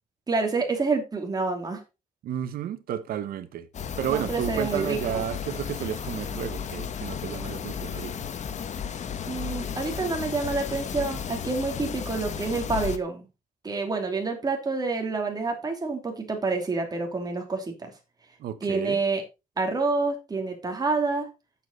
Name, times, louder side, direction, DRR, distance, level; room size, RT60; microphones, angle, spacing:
voice 1, 0.3-1.8 4.1-5.2 9.2-13.3 13.6-17.9 18.6-19.2 19.6-21.3, right 3 dB, 25° right, 2.9 m, -28 dB
voice 2, 2.2-3.7 4.0-8.1 18.4-19.0, right 10 dB, 80° right, 1.2 m, -32 dB
sound 1, 3.7-13.0, left 7 dB, 50° left, 1.2 m, -34 dB
8.6 x 7.5 x 4.0 m
cardioid pair, 105°, 15 cm